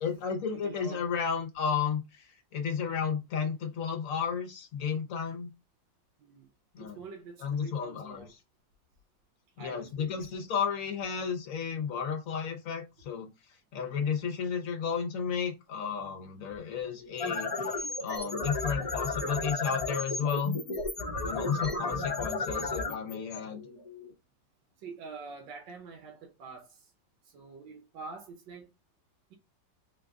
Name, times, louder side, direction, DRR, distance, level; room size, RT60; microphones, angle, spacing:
voice 1, 0.0-2.3 2.5-5.5 6.7-7.0 7.4-8.4 9.6-13.3 13.7-20.6 21.2-23.6, left 6 dB, 60° left, 1.0 m, -33 dB
voice 2, 0.6-1.1 6.2-6.5 6.8-8.3 9.6-10.2 21.5-21.6 24.8-26.8 27.3-28.7, right 4 dB, 75° right, 1.5 m, -46 dB
sound 1, 17.0-24.1, left 3 dB, 35° left, 0.6 m, -34 dB
3.9 x 2.4 x 3.5 m
omnidirectional pair, 2.0 m